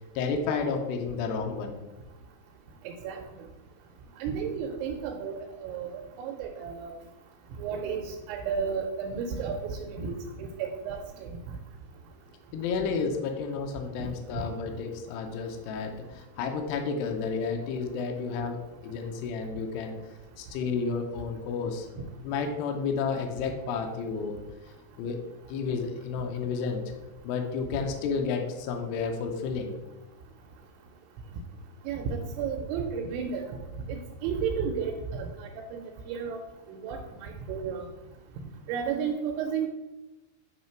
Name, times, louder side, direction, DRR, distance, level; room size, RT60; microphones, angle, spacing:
voice 1, 0.2-1.8 12.5-20.0 20.4-21.9 22.2-24.4 25.0-25.2 25.5-26.8 27.2-29.8, left 5 dB, 80° left, 3 dB, 2.6 m, -31 dB
voice 2, 2.8-3.2 4.2-6.9 7.6-11.0 14.0-14.1 31.9-33.5 33.9-36.4 36.7-37.9 38.7-39.7, right 6 dB, 85° right, 2 dB, 3.0 m, -33 dB
8.8 x 3.3 x 4.4 m, 1.0 s
omnidirectional pair, 5.4 m